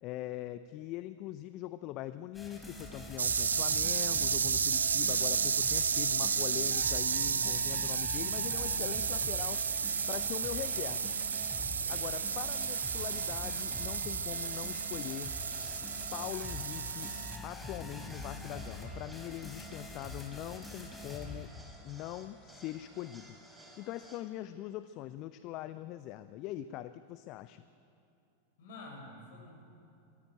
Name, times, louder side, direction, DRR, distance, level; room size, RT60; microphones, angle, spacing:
voice 1, 0.0-9.6 10.1-11.1 11.9-15.4 16.1-17.1 17.4-21.5 21.8-23.4 23.8-27.6, left 14 dB, 40° left, 13 dB, 0.6 m, -42 dB
sound 1, 2.3-21.5, left 1 dB, 5° left, 4.3 m, -45 dB
sound 2, 3.2-17.4, right 6 dB, 70° right, 0.6 m, -32 dB
voice 2, 5.1-5.5 11.7-12.1 28.6-29.5, left 2 dB, 55° left, 1 dB, 6.3 m, -50 dB
sound 3, 7.4-24.2, right 1 dB, 10° right, 4.0 m, -56 dB
22.5 x 15.5 x 9.2 m, 2.7 s
figure-of-eight pair, 90°, 0 cm